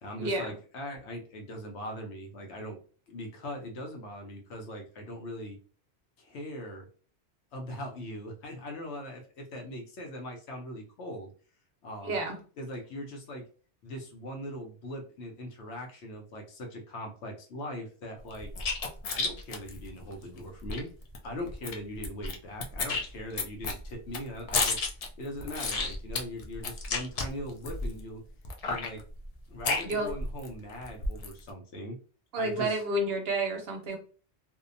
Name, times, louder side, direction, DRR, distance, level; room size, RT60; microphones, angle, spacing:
voice 1, 0.0-2.8 3.1-5.6 6.2-6.9 7.5-11.3 11.8-12.2 12.6-13.4 13.8-18.5 19.1-20.9 21.2-24.8 25.2-28.2 28.6-29.0 29.5-32.0 32.3-32.8, left 1 dB, 80° left, 3 dB, 0.9 m, -40 dB
voice 2, 12.0-12.4 29.8-30.1 32.3-34.0, right 2 dB, 65° right, 2 dB, 0.9 m, -30 dB
sound 1, 18.3-20.8 21.1-21.2 21.5-22.3 22.6-28.0 28.4-30.5 30.8-31.4, left 4 dB, 60° left, 0.4 m, -32 dB
2.7 x 2.1 x 2.5 m, 0.40 s
omnidirectional pair, 1.1 m